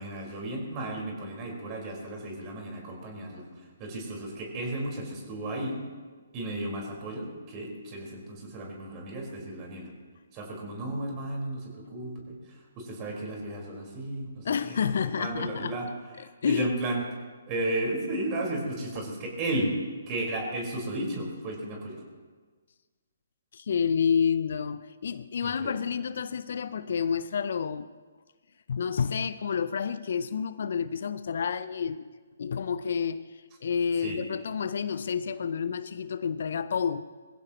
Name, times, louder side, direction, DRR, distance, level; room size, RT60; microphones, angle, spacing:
voice 1, 0.0-5.8 6.3-9.9 10.3-14.9 15.2-15.9 16.2-17.0 17.5-19.7 20.1-22.0 25.4-25.7 34.0-34.2, right 1 dB, 25° right, 4.6 m, -34 dB
voice 2, 14.4-15.7 16.4-16.7 23.5-27.9 28.7-32.1 32.4-33.3 33.6-37.1, left 6 dB, 55° left, 0.5 m, -29 dB
23.5 x 15.5 x 3.1 m
figure-of-eight pair, 135°, 0 cm